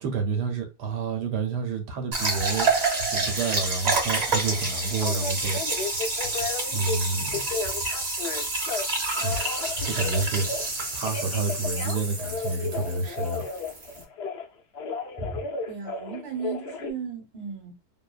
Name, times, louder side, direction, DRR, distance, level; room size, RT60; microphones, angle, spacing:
voice 1, 0.0-2.7 3.1-5.6 6.7-7.4 9.2-9.5 9.8-10.7 10.9-13.4, right 4 dB, 75° right, 1.2 m, -29 dB
sound 1, 2.1-14.0, right 3 dB, 45° right, 1.1 m, -28 dB
Telephone, 4.4-7.0 7.3-8.8 9.2-10.7 11.0-14.5 14.7-16.9, left 4 dB, 90° left, 0.5 m, -34 dB
voice 2, 15.2-17.7, right 5 dB, 25° right, 1.0 m, -36 dB
2.9 x 2.2 x 2.3 m
omnidirectional pair, 1.8 m